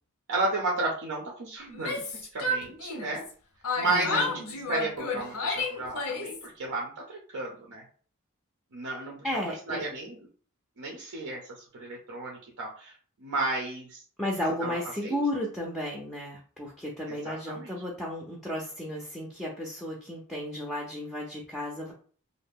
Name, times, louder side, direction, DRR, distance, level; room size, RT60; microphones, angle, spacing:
voice 1, 0.3-2.0 2.3-3.2 3.8-4.3 4.7-7.8 8.7-10.2 10.8-12.9 13.2-14.0 14.6-14.7 15.0-15.2 17.1-17.7, right 2 dB, 70° right, -2 dB, 0.6 m, -33 dB
Yell, 1.7-3.3 3.6-6.5, left 2 dB, 90° left, 0.7 m, -31 dB
voice 2, 3.9-4.3 9.2-9.9 14.2-21.9, left 1 dB, ahead, -2 dB, 0.4 m, -33 dB
2.6 x 2.1 x 3.5 m, 0.43 s
head